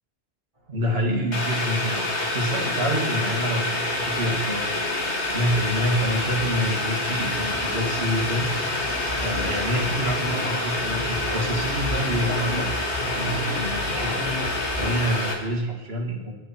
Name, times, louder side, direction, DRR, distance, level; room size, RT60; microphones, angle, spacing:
voice 1, 0.7-2.1 2.3-8.5 9.2-12.9 13.2-14.2 14.5-16.3, equal, 60° right, 0 dB, 2.4 m, -27 dB
Boiling, 1.3-15.3, left 2 dB, 80° left, 2.1 m, -27 dB
sound 1, 1.3-14.9, equal, 30° right, 4.0 m, -35 dB
21.0 x 8.1 x 4.4 m, 1.2 s
omnidirectional pair, 1.1 m